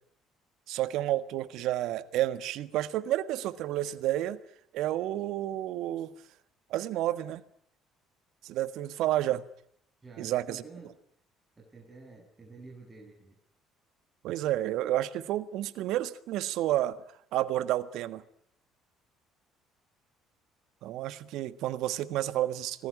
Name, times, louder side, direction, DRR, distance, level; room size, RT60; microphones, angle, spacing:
voice 1, 0.7-4.4 4.7-6.1 6.7-7.4 8.4-9.4 10.2-10.6 14.2-17.0 17.3-18.2 20.8-22.9, right 13 dB, 65° right, 1.5 m, -30 dB
voice 2, 10.0-11.0 11.6-13.4, right 3 dB, 25° right, 7.9 m, -49 dB
26.0 x 20.0 x 9.9 m
hypercardioid pair, 55°, 0 cm